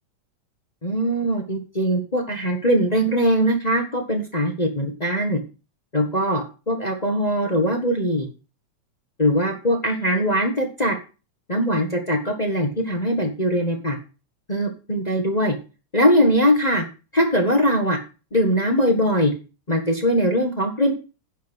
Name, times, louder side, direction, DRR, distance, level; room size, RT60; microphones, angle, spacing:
voice 1, 0.8-5.4 5.9-8.3 9.2-11.0 11.5-14.0 14.5-15.5 15.9-16.8 17.1-18.0 18.3-19.3 19.7-20.9, equal, 25° left, 3 dB, 0.9 m, -21 dB
10.5 x 6.8 x 6.3 m, 0.33 s
omnidirectional pair, 3.3 m